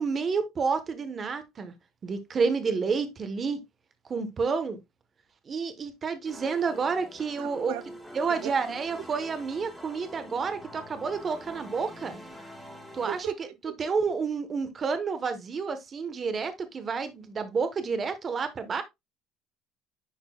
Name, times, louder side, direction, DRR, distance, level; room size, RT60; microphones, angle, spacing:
voice 1, 0.0-1.7 2.0-3.6 4.1-4.8 5.5-7.7 8.1-12.2 12.9-13.3 13.6-18.8, right 5 dB, 25° right, 1.0 m, -29 dB
sound 1, 6.2-13.2, equal, ahead, 1.6 m, -45 dB
voice 2, 7.4-7.8 8.3-8.5 13.1-13.7, right 14 dB, 85° right, 0.5 m, -38 dB
10.0 x 4.4 x 2.2 m
cardioid pair, 155°, 0 cm